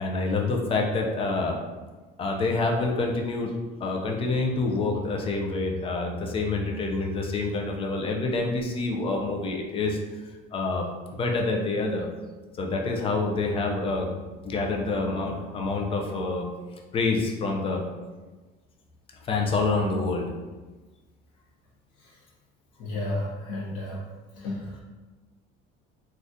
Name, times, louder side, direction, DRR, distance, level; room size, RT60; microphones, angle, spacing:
voice 1, 0.0-1.6 2.2-3.5 3.8-10.0 10.5-10.9 11.1-12.1 12.6-14.1 14.4-16.5 16.9-17.8 19.2-20.3, left 3 dB, 30° left, 1 dB, 0.5 m, -27 dB
voice 2, 22.8-24.0 24.4-24.8, left 1 dB, 75° left, -7 dB, 0.9 m, -32 dB
3.4 x 2.4 x 2.7 m, 1.3 s
cardioid pair, 135°, 20 cm